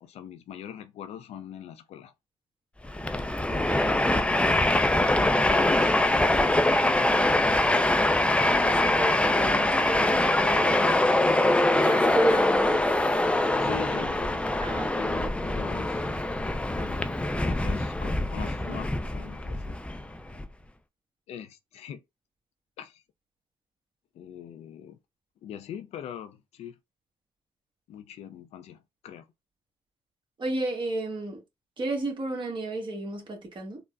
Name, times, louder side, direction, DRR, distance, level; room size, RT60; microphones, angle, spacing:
voice 1, 0.0-2.1 5.0-6.0 13.5-17.1 17.4-19.8 21.3-22.0 22.8-23.0 24.2-25.0 25.4-26.8 27.9-29.3, left 10 dB, 75° left, 0.4 m, -42 dB
Train, 2.8-20.4, left 1 dB, 10° left, 0.4 m, -24 dB
voice 2, 3.5-4.4 8.5-12.8 13.6-14.0 14.6-15.1 16.8-16.9 18.4-18.8 30.4-31.4 31.8-33.8, right 1 dB, 45° right, 1.3 m, -33 dB
3.8 x 2.1 x 2.3 m
supercardioid pair, 65°, 11 cm